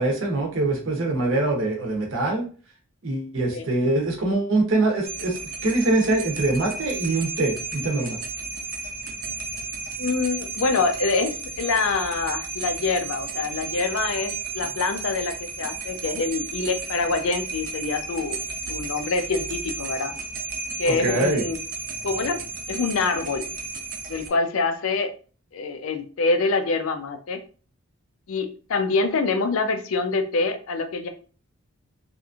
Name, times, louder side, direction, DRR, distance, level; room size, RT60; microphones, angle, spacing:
voice 1, 0.0-2.4 3.0-8.2 20.9-21.4, right 2 dB, 65° right, 0 dB, 0.8 m, -23 dB
sound 1, 5.0-24.3, right 4 dB, 45° right, 0.4 m, -33 dB
voice 2, 10.0-18.4 18.7-20.1 20.8-21.6 22.0-22.4 22.7-23.5 24.1-25.1 25.5-27.4 28.3-31.1, left 3 dB, 75° left, 7 dB, 0.5 m, -25 dB
2.8 x 2.5 x 2.3 m, 0.38 s
head